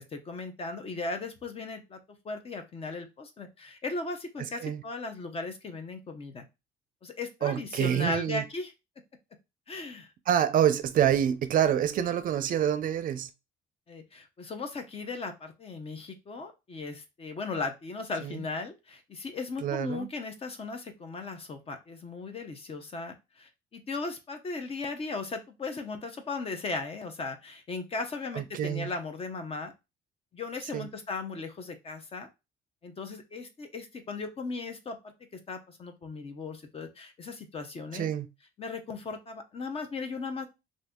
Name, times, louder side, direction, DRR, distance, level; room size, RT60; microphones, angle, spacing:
voice 1, 0.1-2.0 2.2-6.4 7.0-8.7 9.7-10.1 13.9-29.7 30.3-32.3 32.8-35.1 35.5-38.1 38.6-40.5, left 3 dB, 35° left, 0.7 m, -37 dB
voice 2, 7.4-8.4 10.3-13.3 18.2-18.4 19.6-20.1 28.3-28.9 30.7-30.9 37.9-38.3, right 10 dB, 55° right, 0.5 m, -27 dB
2.6 x 2.6 x 3.6 m
cardioid pair, 110°, 17 cm